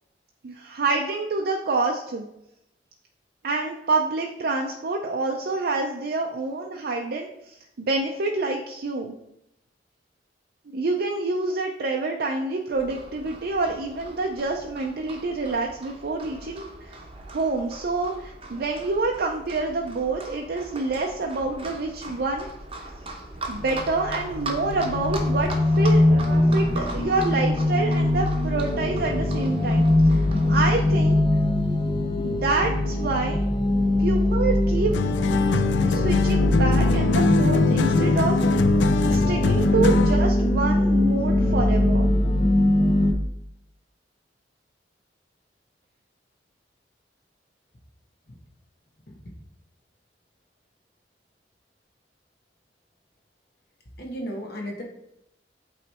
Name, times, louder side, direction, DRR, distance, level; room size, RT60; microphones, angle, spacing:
voice 1, 0.4-2.2 3.4-9.1 10.7-17.0 17.3-22.5 23.5-25.5 25.8-31.2 32.2-33.4 34.0-38.4 39.1-42.1, right 3 dB, 60° right, 1 dB, 0.5 m, -27 dB
Livestock farm animals working animals, 12.7-30.8, right 2 dB, 35° right, 0.8 m, -39 dB
sound 1, 23.6-43.1, left 1 dB, 30° left, 0.5 m, -22 dB
sound 2, 34.9-40.3, left 4 dB, 85° left, 0.4 m, -23 dB
voice 2, 54.0-54.8, equal, 60° left, 0 dB, 1.4 m, -35 dB
8.2 x 3.2 x 4.3 m, 0.82 s
head